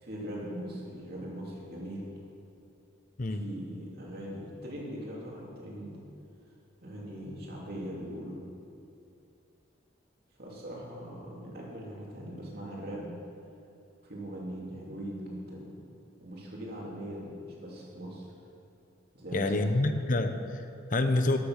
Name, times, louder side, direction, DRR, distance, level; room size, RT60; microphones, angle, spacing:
voice 1, 0.0-2.1 3.4-6.0 6.8-8.4 10.4-13.1 14.0-15.7 16.2-18.3 19.1-19.8, equal, 50° right, -4 dB, 2.7 m, -40 dB
voice 2, 19.3-21.4, left 2 dB, 40° left, 8 dB, 0.7 m, -27 dB
12.0 x 8.5 x 6.4 m, 2.6 s
head